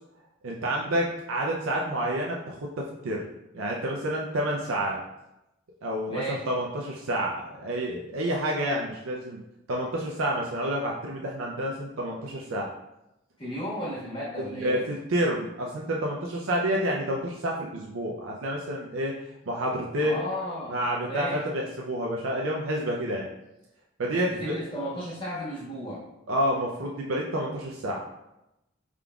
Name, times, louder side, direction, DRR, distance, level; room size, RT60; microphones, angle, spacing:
voice 1, 0.4-3.2 3.5-5.0 5.8-9.4 9.7-12.7 14.4-19.1 19.5-20.2 20.7-23.3 24.0-24.5 26.3-28.0, equal, 85° right, -2 dB, 0.5 m, -29 dB
voice 2, 6.1-6.4 13.4-14.8 20.0-20.8 21.1-21.4 24.3-26.1, equal, 25° left, -7 dB, 1.4 m, -34 dB
4.8 x 3.7 x 2.3 m, 0.91 s
head